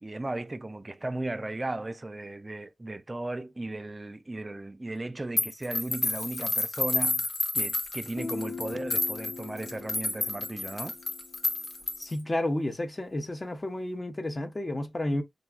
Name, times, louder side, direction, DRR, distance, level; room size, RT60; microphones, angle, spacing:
voice 1, 0.0-7.3 7.5-11.0, right 2 dB, 30° right, 0.4 m, -36 dB
sound 1, 5.4-12.2, left 2 dB, 55° left, 1.0 m, -30 dB
Guitar, 8.2-11.8, left 4 dB, 80° left, 0.4 m, -41 dB
voice 2, 12.0-15.2, left 1 dB, 30° left, 0.8 m, -31 dB
5.1 x 2.3 x 2.2 m
cardioid pair, 55°, 0 cm